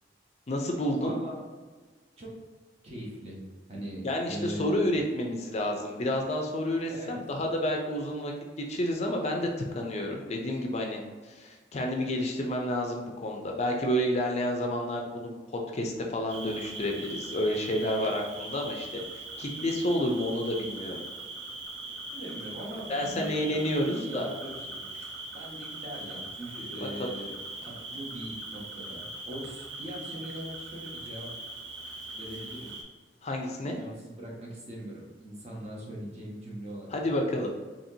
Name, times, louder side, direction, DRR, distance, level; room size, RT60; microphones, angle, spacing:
voice 1, 0.5-1.2 4.0-8.3 8.7-9.5 9.7-15.3 15.7-21.0 22.9-24.3 27.0-27.1 33.2-33.8 36.9-37.5, left 1 dB, 35° left, 2 dB, 0.4 m, -30 dB
voice 2, 1.0-1.5 2.2-2.4 2.8-4.9 6.9-7.2 22.1-23.3 24.0-24.8 25.3-27.4 27.6-31.4 32.1-32.8 33.6-37.0, right 1 dB, 35° right, -3 dB, 1.0 m, -41 dB
Cricket, 16.3-32.8, right 2 dB, 85° right, 0.7 m, -41 dB
4.2 x 2.8 x 2.7 m, 1.4 s
head